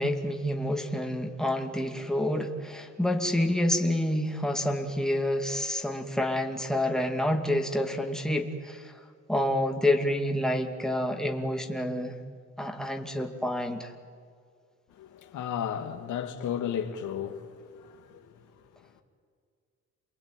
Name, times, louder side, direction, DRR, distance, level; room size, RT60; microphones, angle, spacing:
voice 1, 0.0-8.9 9.3-12.2 12.6-13.9, left 1 dB, ahead, 2.5 m, -28 dB
voice 2, 15.0-17.5 17.8-18.3, left 8 dB, 80° left, 2.1 m, -34 dB
28.5 x 21.0 x 9.1 m
cardioid pair, 90°, 30 cm